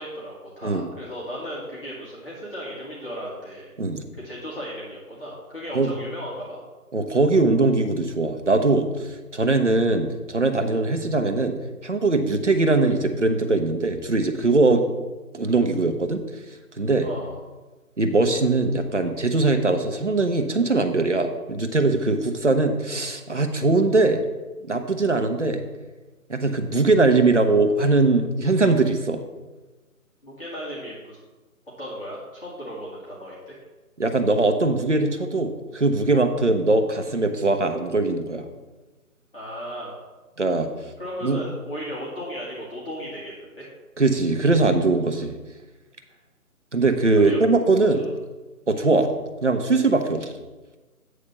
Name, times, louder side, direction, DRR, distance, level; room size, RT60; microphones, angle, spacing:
voice 1, 0.0-3.7 4.1-6.6 17.0-17.4 30.2-31.2 31.8-33.5 39.3-40.0 41.0-43.7 47.1-47.4 47.9-48.1, equal, 35° left, -8 dB, 1.7 m, -35 dB
voice 2, 6.9-8.9 9.3-11.6 11.8-14.8 15.3-16.2 16.8-17.1 18.0-24.2 24.6-25.6 26.3-29.2 34.0-38.5 40.4-40.7 41.2-41.4 44.0-45.3 46.7-48.0 48.7-49.1 49.4-50.3, right 3 dB, 50° right, 6 dB, 0.7 m, -21 dB
8.6 x 3.3 x 6.5 m, 1.2 s
figure-of-eight pair, 180°, 46 cm